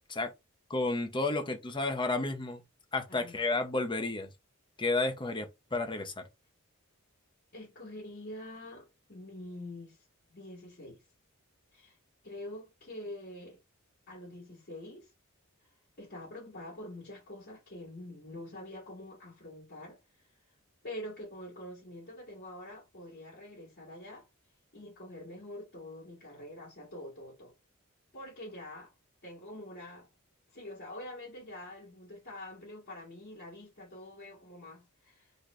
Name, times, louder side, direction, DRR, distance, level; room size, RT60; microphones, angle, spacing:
voice 1, 0.7-2.6 2.9-4.3 4.8-6.2, left 2 dB, 25° left, 0.9 m, -31 dB
voice 2, 3.1-3.4 7.5-10.0 10.3-11.0 11.7-12.0 12.2-13.6 14.1-15.1 16.0-20.0 20.8-24.3 24.7-27.5 28.1-28.9 29.2-30.1 30.5-35.3, left 1 dB, 50° left, 2.5 m, -45 dB
4.2 x 3.2 x 3.2 m
head